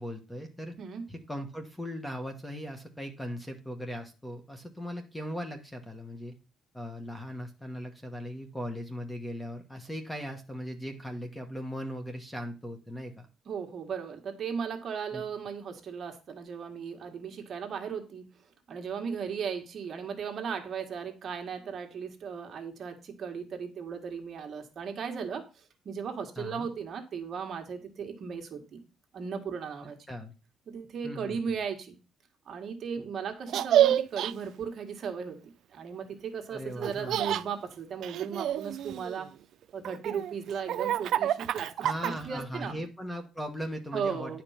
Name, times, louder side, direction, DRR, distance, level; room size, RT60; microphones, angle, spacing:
voice 1, 0.0-0.8 1.1-6.3 6.7-13.3 15.1-15.2 26.4-26.7 30.1-30.3 31.0-31.4 36.5-37.2 41.8-44.4, equal, 5° left, 6 dB, 1.2 m, -38 dB
voice 2, 13.4-18.3 18.7-28.8 29.1-30.0 30.7-32.0 32.4-35.4 35.7-39.3 39.7-42.8 43.9-44.4, right 6 dB, 40° right, 4 dB, 1.7 m, -36 dB
Laughter, 33.5-34.3 36.8-37.4 38.0-39.3 39.8-42.4, right 11 dB, 65° right, 0.4 m, -28 dB
10.5 x 5.1 x 5.7 m, 0.31 s
cardioid pair, 160°, 0 cm